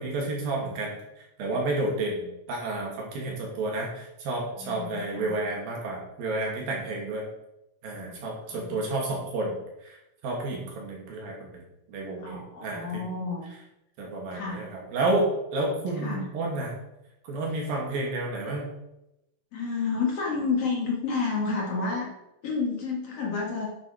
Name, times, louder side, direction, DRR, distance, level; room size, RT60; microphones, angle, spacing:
voice 1, 0.0-7.2 7.8-9.6 9.8-10.0 10.2-11.6 11.9-13.0 14.0-16.7 17.3-18.7, right 2 dB, 75° right, -1 dB, 4.2 m, -30 dB
voice 2, 4.6-5.4 8.0-8.2 8.4-8.8 12.2-13.5 14.3-14.6 16.0-16.3 19.5-22.1 22.4-23.7, left 4 dB, 50° left, -1 dB, 2.6 m, -30 dB
9.7 x 8.1 x 4.8 m, 0.88 s
omnidirectional pair, 4.1 m